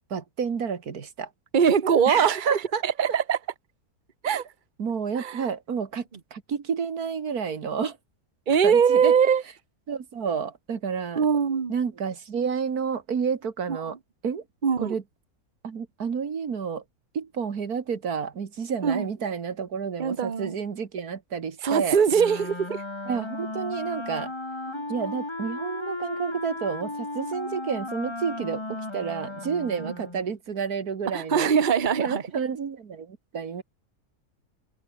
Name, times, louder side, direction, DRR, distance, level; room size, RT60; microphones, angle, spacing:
voice 1, 0.1-1.3 2.1-3.2 4.8-6.0 6.3-8.0 8.6-9.2 9.9-11.2 11.7-14.0 14.2-14.4 14.8-15.0 15.6-16.8 17.1-22.0 23.1-24.3 24.9-31.5 32.0-33.6, right 6 dB, 90° right, 2.3 m, -30 dB
voice 2, 1.5-3.4 4.2-4.4 5.1-5.5 8.5-9.4 11.1-11.7 13.7-13.8 14.6-14.9 18.8-19.1 20.0-20.6 21.6-22.8 24.7-24.8 29.8-29.9 31.1-32.2, right 7 dB, 35° right, 1.3 m, -22 dB
Wind instrument woodwind instrument, 22.1-30.4, left 2 dB, 20° left, 2.0 m, -35 dB
open air
omnidirectional pair, 1.6 m